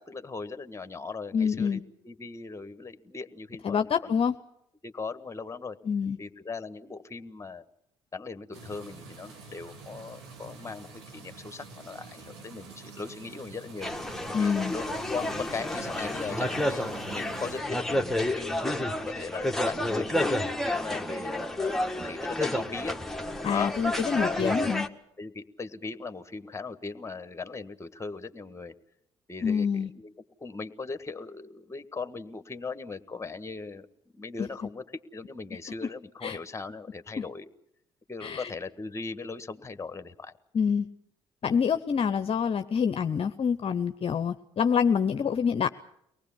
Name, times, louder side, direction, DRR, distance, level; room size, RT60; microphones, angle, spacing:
voice 1, 0.0-4.2 4.8-5.8 6.2-7.6 8.1-13.9 14.4-18.7 19.0-20.1 20.4-23.0 23.5-23.8 24.2-24.4 25.2-28.7 29.3-30.1 30.4-33.9 34.1-34.8 35.1-37.5 38.1-40.3, left 4 dB, 20° left, 12 dB, 1.5 m, -39 dB
voice 2, 1.3-1.8 3.6-4.3 5.8-6.2 14.3-14.7 23.4-24.9 29.4-29.9 34.4-34.5 35.8-35.9 36.2-36.4 37.2-37.3 38.2-38.5 40.5-40.9 41.4-45.7, left 6 dB, 45° left, 9 dB, 0.8 m, -26 dB
sound 1, 8.5-17.6, right 4 dB, 85° right, 2.4 m, -47 dB
sound 2, 13.8-24.9, left 1 dB, ahead, 1.6 m, -30 dB
24.0 x 19.0 x 7.1 m, 0.76 s
hypercardioid pair, 55°, 14 cm